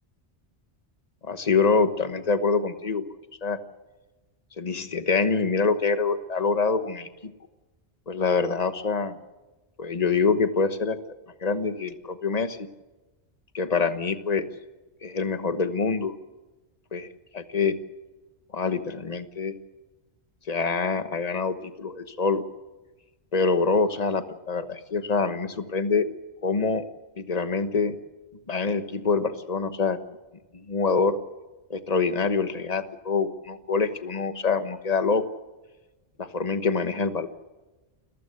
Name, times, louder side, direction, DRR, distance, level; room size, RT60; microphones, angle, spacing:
voice 1, 1.2-3.0 3.4-3.6 4.6-7.3 8.1-9.2 9.8-11.0 11.4-12.7 13.5-14.4 15.0-16.1 16.9-17.1 17.3-17.7 18.5-19.5 20.5-22.4 23.3-26.1 26.4-26.9 27.2-28.0 28.5-30.0 30.5-31.2 31.7-35.2 36.2-37.3, left 4 dB, 35° left, 10 dB, 1.3 m, -25 dB
29.0 x 15.0 x 8.0 m, 1.2 s
omnidirectional pair, 1.1 m